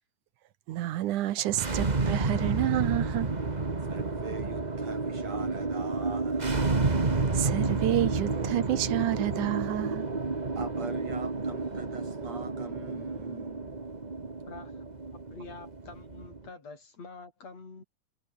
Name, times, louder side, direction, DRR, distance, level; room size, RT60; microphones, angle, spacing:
voice 1, 0.7-3.3 7.3-10.1, right 13 dB, 85° right, 2.6 m, -29 dB
sound 1, 1.5-16.5, right 3 dB, 25° right, 1.0 m, -30 dB
voice 2, 3.9-6.9 10.3-13.8, right 4 dB, 60° right, 5.6 m, -44 dB
voice 3, 14.5-14.9 15.1-17.8, left 4 dB, 55° left, 6.5 m, -47 dB
omnidirectional pair, 3.5 m